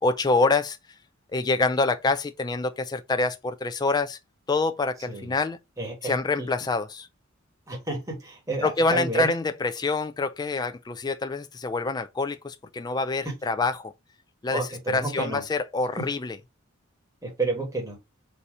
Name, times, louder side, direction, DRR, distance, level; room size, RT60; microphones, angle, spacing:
voice 1, 0.0-0.8 1.3-4.2 4.5-5.6 6.0-7.1 8.6-13.9 14.4-16.4, left 3 dB, 20° left, 0.3 m, -26 dB
voice 2, 5.8-6.5 7.7-9.3 14.4-15.4 16.0-16.1 17.2-18.0, right 3 dB, 15° right, 1.5 m, -30 dB
4.1 x 2.7 x 4.6 m
head